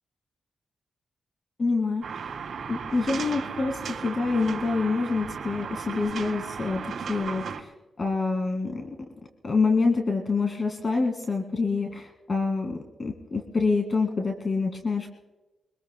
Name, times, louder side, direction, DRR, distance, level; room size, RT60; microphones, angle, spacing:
voice 1, 1.6-2.3 2.7-7.7 8.0-8.9 9.4-15.1, left 4 dB, 40° left, 4 dB, 1.9 m, -26 dB
sound 1, 2.0-7.6, right 6 dB, 75° right, 2.6 m, -35 dB
25.0 x 20.0 x 2.2 m, 1.1 s
cardioid pair, 90°, 0 cm